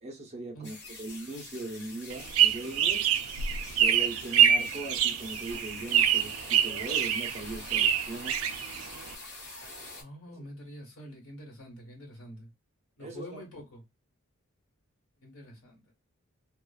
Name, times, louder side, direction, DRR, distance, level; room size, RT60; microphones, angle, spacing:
voice 1, 0.0-3.0 3.8-8.4 13.0-13.4, right 2 dB, 30° right, 0.8 m, -40 dB
sound 1, 0.6-10.0, left 2 dB, 50° left, 1.0 m, -45 dB
sound 2, 2.1-9.1, right 9 dB, 80° right, 0.3 m, -26 dB
voice 2, 10.0-12.5 13.0-13.8 15.2-15.9, equal, 85° left, 1.3 m, -46 dB
2.5 x 2.3 x 2.3 m
head